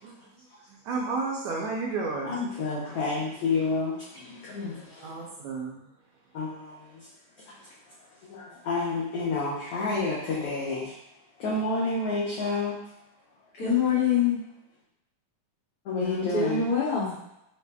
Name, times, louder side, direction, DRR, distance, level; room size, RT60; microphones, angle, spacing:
voice 1, 0.7-2.4 3.1-3.2 5.0-5.9, right 3 dB, 80° right, -2 dB, 1.7 m, -32 dB
voice 2, 2.2-5.1 6.3-7.1 7.5-7.7 8.3-11.0 11.4-12.8 15.8-16.7, left 3 dB, 80° left, -6 dB, 1.3 m, -30 dB
voice 3, 13.6-14.4 16.0-17.1, left 6 dB, 60° left, -9 dB, 1.7 m, -25 dB
5.0 x 2.0 x 3.3 m, 0.84 s
omnidirectional pair, 3.5 m